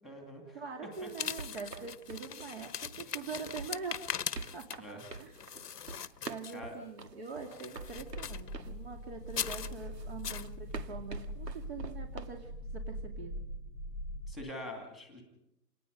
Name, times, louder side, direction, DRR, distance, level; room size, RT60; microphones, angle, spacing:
voice 1, 0.0-0.6 1.0-1.1 3.1-3.2 4.8-5.0 6.5-6.8 14.3-15.2, left 1 dB, ahead, 3 dB, 2.3 m, -45 dB
voice 2, 0.5-4.2 4.5-4.9 5.2-5.3 6.2-13.4, right 4 dB, 40° right, 3 dB, 2.7 m, -44 dB
sound 1, 0.9-6.8 7.3-8.5 9.3-9.7 10.2-10.5, left 8 dB, 70° left, 1.1 m, -40 dB
sound 2, 1.1-8.8 9.4-12.4, right 4 dB, 75° right, 1.9 m, -46 dB
sound 3, 7.8-14.3, equal, 15° right, 1.2 m, -42 dB
27.5 x 19.5 x 5.3 m, 0.82 s
hypercardioid pair, 165°, 49 cm